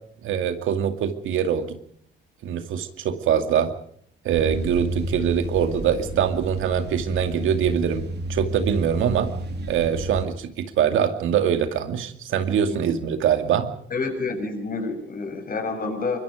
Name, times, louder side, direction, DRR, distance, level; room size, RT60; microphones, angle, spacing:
voice 1, 0.2-1.8 2.4-3.7 4.2-9.3 9.7-13.7, right 8 dB, 80° right, 7 dB, 2.4 m, -23 dB
sound 1, 4.3-10.2, right 1 dB, 55° right, 3.4 m, -31 dB
voice 2, 13.9-16.2, left 3 dB, 45° left, 6 dB, 6.8 m, -28 dB
24.5 x 22.0 x 5.1 m, 0.63 s
cardioid pair, 90°, 20 cm